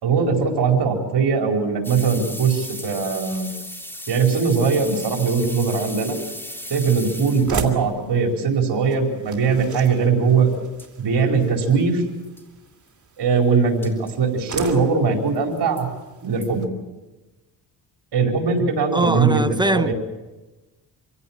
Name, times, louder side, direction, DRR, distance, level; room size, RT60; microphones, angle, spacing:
voice 1, 0.0-3.5 4.1-6.2 6.7-10.5 11.0-12.0 13.2-15.9 16.2-16.7 18.1-19.9, right 5 dB, 70° right, 4.9 m, -20 dB
sound 1, 1.8-7.7 10.5-10.6 10.8-10.9 11.4-11.5 11.7-11.8 12.2-12.4 13.8-14.1 14.6-14.7 15.3-15.8 16.4-16.5, equal, 5° left, 3.4 m, -36 dB
sound 2, 6.6-16.7, right 5 dB, 45° right, 2.8 m, -37 dB
voice 2, 18.9-19.9, right 2 dB, 10° right, 1.1 m, -21 dB
26.0 x 16.5 x 7.5 m
cardioid pair, 85°, 43 cm